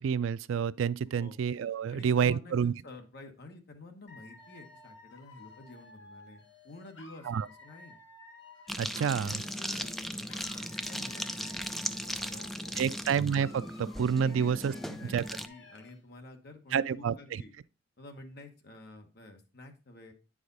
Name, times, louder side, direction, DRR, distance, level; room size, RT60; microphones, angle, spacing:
voice 1, 0.0-2.7 7.3-7.5 8.8-9.4 12.8-14.7 15.1-15.2 16.7-17.4, right 7 dB, 85° right, 0.3 m, -29 dB
voice 2, 1.9-8.0 8.9-13.0 14.2-17.5 18.0-20.1, left 2 dB, 55° left, 1.3 m, -51 dB
Dog / Alarm, 4.1-10.0 10.3-13.0 13.3-16.0, left 2 dB, 75° left, 1.6 m, -54 dB
sound 1, 8.7-15.5, equal, ahead, 0.3 m, -38 dB
9.4 x 4.9 x 4.0 m
head